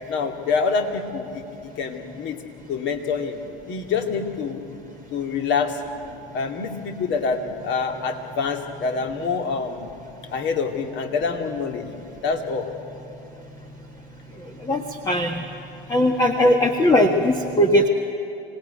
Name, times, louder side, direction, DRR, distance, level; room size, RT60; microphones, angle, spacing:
voice 1, 0.1-2.4 2.7-3.4 3.7-4.6 5.1-5.8 6.3-9.9 10.3-11.9 12.2-12.7, left 5 dB, 40° left, 4 dB, 2.4 m, -26 dB
voice 2, 14.7-15.4 15.9-17.9, left 1 dB, 15° left, 4 dB, 1.5 m, -19 dB
25.5 x 18.0 x 9.5 m, 2.8 s
hypercardioid pair, 90°, 29 cm